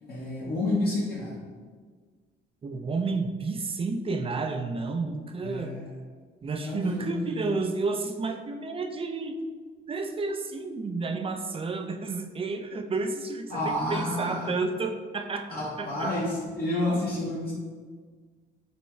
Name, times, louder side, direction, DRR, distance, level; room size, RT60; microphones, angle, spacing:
voice 1, 0.0-1.4 5.4-5.9 6.6-7.5 13.5-14.5 15.5-17.5, left 1 dB, 50° left, -6 dB, 1.0 m, -30 dB
voice 2, 2.6-5.7 6.4-9.4 9.9-15.5 15.8-16.1, right 3 dB, 30° right, 6 dB, 0.4 m, -31 dB
5.4 x 2.3 x 3.1 m, 1.5 s
cardioid pair, 90°, 20 cm